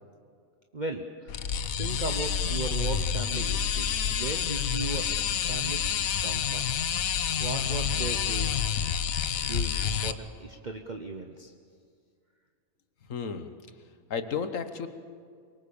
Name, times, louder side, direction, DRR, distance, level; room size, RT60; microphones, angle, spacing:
voice 1, 0.7-1.3 1.8-5.1 5.4-5.8 6.2-6.7 7.4-8.6 9.4-11.5, right 3 dB, 35° right, 4 dB, 1.1 m, -37 dB
sound 1, 1.3-10.1, left 8 dB, 85° left, 1.3 m, -28 dB
voice 2, 13.1-13.5 14.1-14.9, left 6 dB, 70° left, 9 dB, 1.6 m, -32 dB
24.0 x 22.5 x 7.1 m, 2.1 s
omnidirectional pair, 1.4 m